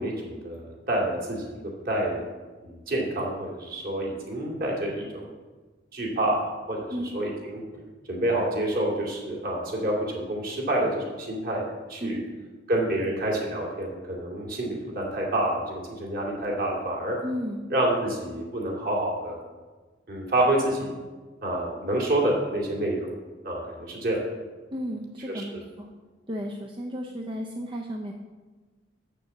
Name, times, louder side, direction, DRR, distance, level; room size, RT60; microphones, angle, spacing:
voice 1, 0.0-1.6 1.8-2.2 2.6-5.3 5.9-6.9 7.1-7.6 8.1-12.2 12.7-17.2 17.7-19.4 20.1-20.9 21.4-23.1 23.4-24.2 25.3-25.4, right 1 dB, 50° right, -2 dB, 2.5 m, -28 dB
voice 2, 17.2-17.6 24.7-25.9 26.3-28.1, equal, 25° right, 1 dB, 0.6 m, -33 dB
7.4 x 6.8 x 7.2 m, 1.3 s
head